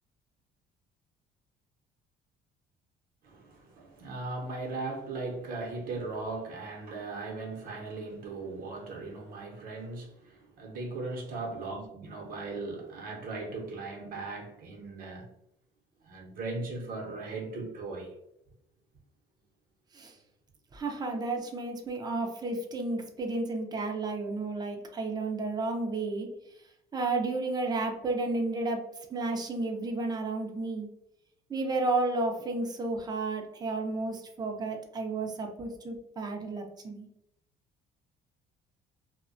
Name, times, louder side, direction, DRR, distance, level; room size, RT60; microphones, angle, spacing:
voice 1, 3.2-15.3 16.0-18.1, right 3 dB, 55° right, 0.7 m, -38 dB
voice 2, 20.7-26.3 26.9-30.9 31.5-37.1, right 3 dB, 25° right, 0.5 m, -32 dB
2.3 x 2.1 x 2.5 m
cardioid pair, 110°, 17 cm